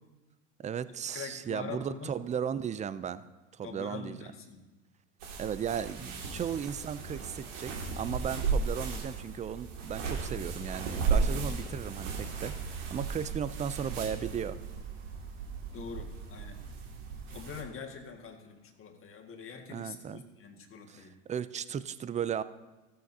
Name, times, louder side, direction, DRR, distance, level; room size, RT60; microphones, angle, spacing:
voice 1, 0.6-3.2 3.5-4.2 5.4-14.6 19.7-20.2 20.9-22.4, right 8 dB, 20° right, 15 dB, 0.4 m, -36 dB
voice 2, 1.1-2.2 3.6-4.6 6.2-6.4 15.7-16.6 17.3-21.1, left 5 dB, 35° left, 3 dB, 1.8 m, -44 dB
sound 1, 5.2-17.6, right 5 dB, 75° right, 2.4 m, -35 dB
15.0 x 13.5 x 2.8 m, 1.1 s
supercardioid pair, 95°, 37 cm